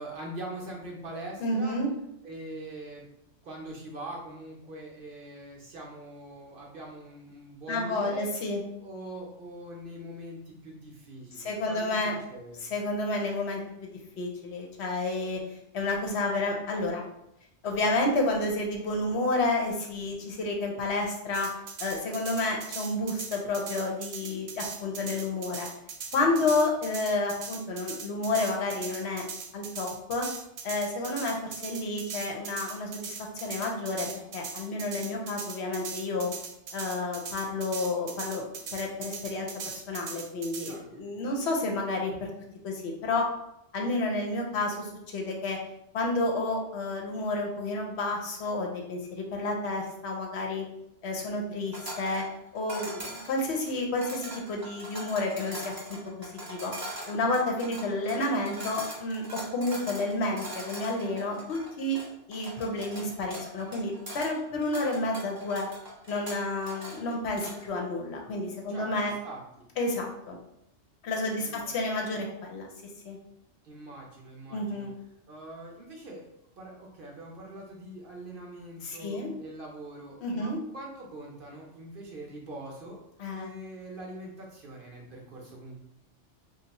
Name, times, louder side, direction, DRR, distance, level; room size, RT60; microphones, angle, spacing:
voice 1, 0.0-1.8 2.2-3.0 3.4-8.3 8.8-12.7 26.2-26.5 40.6-40.9 52.7-52.8 68.7-69.4 71.4-71.7 73.6-74.9 75.3-76.3 76.6-85.8, right 1 dB, 55° right, -2 dB, 0.8 m, -43 dB
voice 2, 1.4-1.9 7.7-8.6 11.4-12.1 12.6-13.9 14.2-15.4 15.7-17.0 17.6-21.5 21.8-25.7 26.1-29.2 29.5-30.3 30.6-34.1 34.3-36.3 36.7-38.4 38.7-39.5 39.7-42.3 42.6-43.3 43.7-45.6 45.9-50.7 51.0-52.2 52.5-55.7 56.2-56.7 57.1-62.0 62.3-65.7 66.1-69.1 69.8-70.4 71.0-72.7 73.0-73.2 74.5-74.9 78.8-79.3 80.2-80.6 83.2-83.5, left 2 dB, 70° left, 1 dB, 0.8 m, -30 dB
sound 1, 21.3-40.8, right 5 dB, 85° right, 0.9 m, -40 dB
sound 2, 51.7-67.7, right 1 dB, 25° right, 0.6 m, -42 dB
2.6 x 2.3 x 4.0 m, 0.80 s
omnidirectional pair, 1.2 m